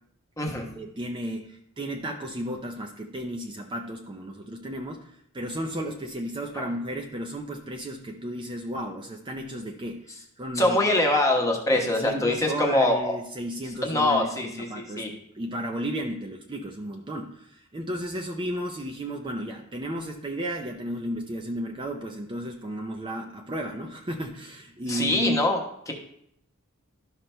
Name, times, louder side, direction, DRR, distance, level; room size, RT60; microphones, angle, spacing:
voice 1, 0.7-10.8 11.7-25.4, right 1 dB, 20° right, 2 dB, 0.5 m, -34 dB
voice 2, 10.6-13.2 13.8-15.1 24.9-25.6 25.9-26.0, left 2 dB, 15° left, 0 dB, 1.1 m, -24 dB
12.5 x 5.8 x 2.2 m, 0.72 s
head